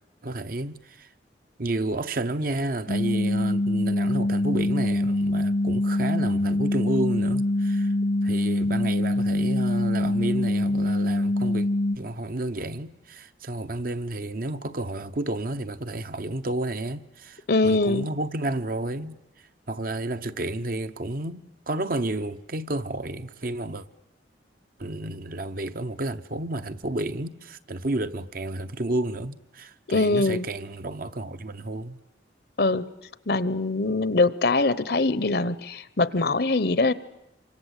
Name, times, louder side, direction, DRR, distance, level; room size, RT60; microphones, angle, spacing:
voice 1, 0.2-1.1 1.6-7.9 8.2-11.7 12.0-23.9 24.8-32.0, right 2 dB, 50° right, 0.9 m, -31 dB
sound 1, 2.9-12.0, left 1 dB, 85° left, 1.8 m, -24 dB
voice 2, 17.5-18.1 29.9-30.5 32.6-32.8 33.3-36.9, left 3 dB, 60° left, 0.9 m, -23 dB
27.0 x 25.0 x 8.3 m
head